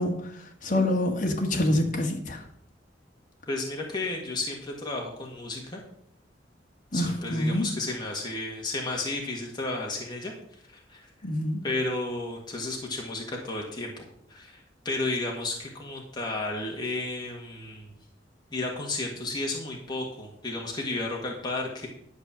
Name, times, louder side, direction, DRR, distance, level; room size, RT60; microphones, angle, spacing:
voice 1, 0.0-2.4 6.9-7.7 11.2-11.6, left 1 dB, 45° left, 2 dB, 1.6 m, -26 dB
voice 2, 3.5-5.8 6.9-10.3 10.7-11.1 11.6-17.9 18.5-21.9, left 2 dB, 25° left, -1 dB, 1.8 m, -33 dB
11.5 x 5.3 x 7.3 m, 0.69 s
head